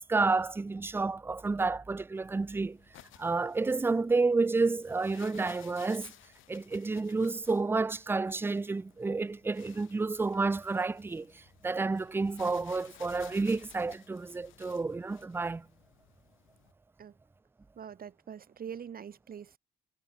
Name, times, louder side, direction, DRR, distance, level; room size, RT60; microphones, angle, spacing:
voice 1, 0.1-2.8 3.2-6.1 6.5-15.7, right 3 dB, 10° right, 0.3 m, -30 dB
sound 1, 2.2-16.7, left 14 dB, 85° left, 2.9 m, -57 dB
voice 2, 17.8-19.6, right 8 dB, 50° right, 1.7 m, -44 dB
cardioid pair, 90°, 20 cm